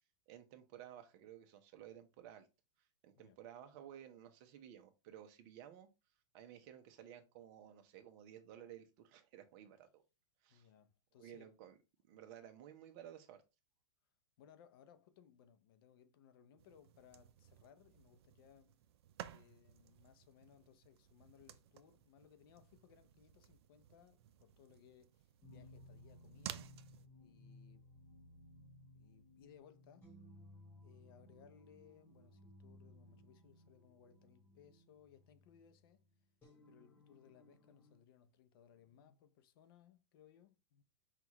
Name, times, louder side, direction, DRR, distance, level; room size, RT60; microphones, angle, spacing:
voice 1, 0.3-2.5 3.0-5.9 6.3-10.0 10.4-10.7 11.2-11.8 12.1-13.4, right 10 dB, 40° right, 0.8 m, -55 dB
voice 2, 10.5-11.5 14.4-18.8 19.3-26.7 27.2-27.9 28.9-30.1 30.8-36.0 36.7-40.8, left 8 dB, 55° left, 0.6 m, -65 dB
sound 1, 16.6-27.1, right 11 dB, 65° right, 0.5 m, -55 dB
sound 2, 25.4-38.0, left 1 dB, 15° left, 1.3 m, -61 dB
5.8 x 2.4 x 2.9 m
supercardioid pair, 150°, 15 cm